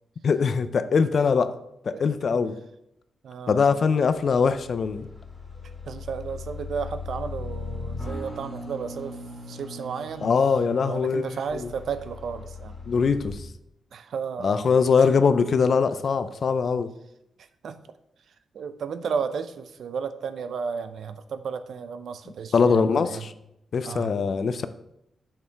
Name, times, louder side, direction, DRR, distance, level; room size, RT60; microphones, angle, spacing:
voice 1, 0.2-1.5 1.8-2.6 3.5-5.1 10.2-11.7 12.9-13.5 14.4-16.9 22.5-23.3 23.7-24.7, left 5 dB, 45° left, 12 dB, 0.4 m, -22 dB
voice 2, 3.2-3.9 5.9-9.2 9.5-10.3 10.8-12.8 13.9-14.6 15.0-15.1 17.4-17.8 18.5-23.3 23.8-24.1, right 6 dB, 65° right, 11 dB, 0.5 m, -33 dB
sound 1, 3.9-13.3, left 3 dB, 5° left, 2.7 m, -38 dB
8.6 x 6.6 x 3.4 m, 0.82 s
wide cardioid pair, 155°, 0 cm